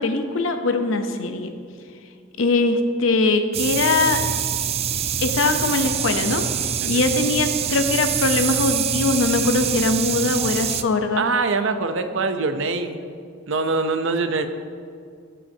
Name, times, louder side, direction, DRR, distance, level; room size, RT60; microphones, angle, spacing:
voice 1, 0.0-1.5 2.4-4.2 5.2-11.2, left 3 dB, 75° left, 6 dB, 0.7 m, -21 dB
sound 1, 3.5-10.8, right 8 dB, 30° right, 0.3 m, -25 dB
voice 2, 11.2-13.1 13.5-14.5, right 3 dB, 70° right, 9 dB, 0.6 m, -23 dB
16.5 x 5.6 x 2.8 m, 2.3 s
head